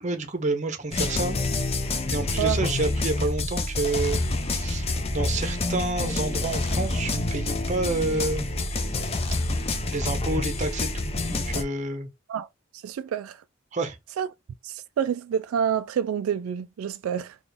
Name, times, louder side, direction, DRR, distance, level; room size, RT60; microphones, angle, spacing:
voice 1, 0.0-1.4 2.1-4.2 4.5-8.5 9.9-12.1 13.7-14.0, right 2 dB, 35° right, 0.8 m, -29 dB
sound 1, 0.9-11.6, left 2 dB, 30° left, 0.5 m, -27 dB
voice 2, 12.7-13.4 14.2-14.3 14.6-17.4, right 8 dB, 85° right, 0.3 m, -28 dB
3.9 x 2.4 x 3.4 m
head